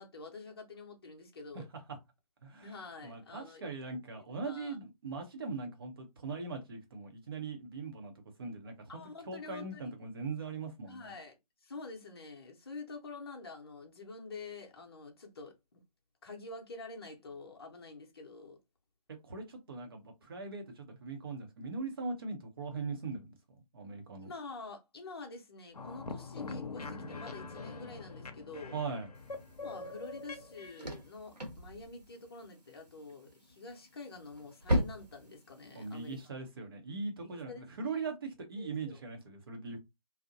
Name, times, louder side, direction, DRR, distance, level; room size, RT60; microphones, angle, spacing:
voice 1, 0.0-1.7 2.6-3.7 4.4-4.8 8.9-9.9 10.9-11.3 11.6-15.8 16.2-18.6 24.2-28.8 29.6-36.2 37.2-37.6 37.9-38.1 38.6-39.0, left 3 dB, 40° left, 0.8 m, -47 dB
voice 2, 2.4-2.7 3.0-8.1 8.4-11.1 19.2-23.3 23.7-24.3 28.7-29.1 35.7-39.8, right 4 dB, 35° right, 0.7 m, -40 dB
sound 1, 25.7-30.9, left 3 dB, 75° left, 0.7 m, -44 dB
sound 2, 29.1-36.3, equal, 85° right, 1.0 m, -39 dB
2.6 x 2.0 x 2.6 m
figure-of-eight pair, 150°, 20 cm